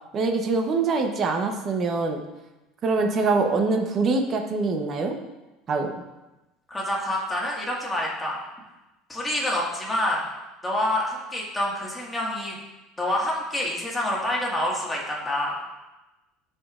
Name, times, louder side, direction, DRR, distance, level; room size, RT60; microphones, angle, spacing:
voice 1, 0.1-2.2 2.8-5.2 5.7-5.9, right 3 dB, 30° right, 4 dB, 0.8 m, -24 dB
voice 2, 6.7-8.4 9.1-10.2 10.6-12.6 13.0-15.6, left 1 dB, 10° left, -4 dB, 1.7 m, -27 dB
13.5 x 5.2 x 2.5 m, 1.0 s
cardioid pair, 150°, 0 cm